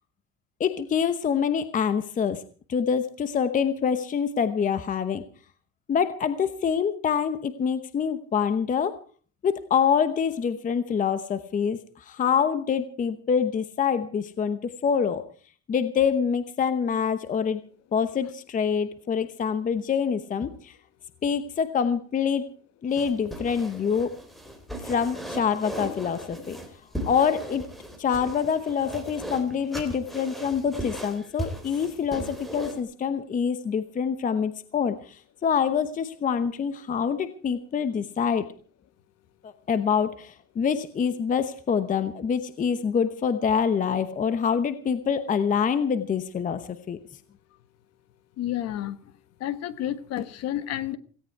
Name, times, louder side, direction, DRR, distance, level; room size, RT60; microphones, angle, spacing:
voice 1, 0.6-2.4 2.7-5.2 5.9-9.0 9.4-15.3 15.7-17.6 17.9-20.8 21.2-22.5 22.8-24.1 24.8-26.6 27.0-27.6 28.0-38.5 39.4-47.0, left 7 dB, 20° left, 11 dB, 0.9 m, -26 dB
sound 1, 22.9-32.8, right 1 dB, ahead, 3.4 m, -37 dB
voice 2, 48.4-49.0 49.4-51.0, left 12 dB, 45° left, 13 dB, 1.3 m, -30 dB
17.5 x 17.0 x 4.7 m, 0.42 s
cardioid pair, 145°, 35 cm